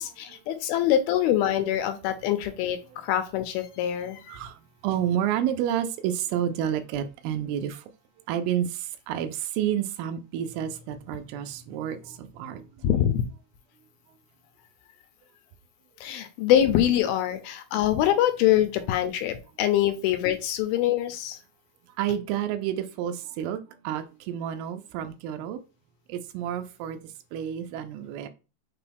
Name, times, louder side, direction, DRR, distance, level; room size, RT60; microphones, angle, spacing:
voice 1, 0.0-4.2 12.8-13.3 16.0-21.4, left 11 dB, 80° left, 8 dB, 2.2 m, -24 dB
voice 2, 4.3-7.8 8.3-12.7 22.0-25.6 26.1-27.0 27.3-28.3, right 10 dB, 80° right, 7 dB, 2.2 m, -30 dB
5.9 x 2.3 x 3.3 m, 0.30 s
omnidirectional pair, 4.6 m